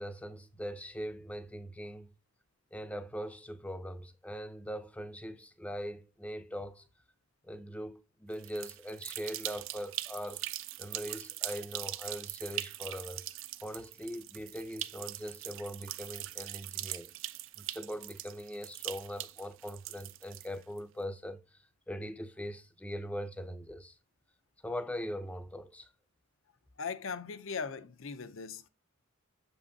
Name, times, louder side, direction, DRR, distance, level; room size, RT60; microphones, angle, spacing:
voice 1, 0.0-2.1 2.7-6.9 7.4-10.4 10.8-13.2 13.6-17.1 17.6-24.0 24.6-25.9, equal, 5° left, 0.5 m, -41 dB
sound 1, 8.3-20.8, right 15 dB, 60° right, 0.4 m, -41 dB
voice 2, 26.8-28.7, left 5 dB, 65° left, 0.6 m, -39 dB
7.3 x 5.5 x 2.7 m
head